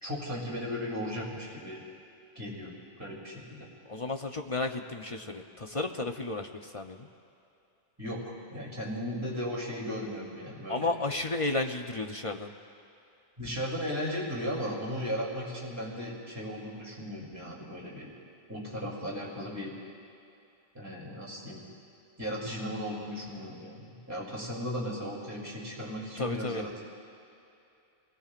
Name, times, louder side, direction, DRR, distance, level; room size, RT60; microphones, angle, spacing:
voice 1, 0.0-1.8 2.3-3.7 8.0-10.9 13.4-18.1 18.5-19.7 20.7-21.6 22.2-26.7, equal, 15° right, -4 dB, 2.9 m, -36 dB
voice 2, 3.8-7.1 10.7-12.5 26.2-26.7, left 2 dB, 35° left, 4 dB, 0.6 m, -33 dB
29.0 x 20.0 x 2.5 m, 2.7 s
omnidirectional pair, 1.2 m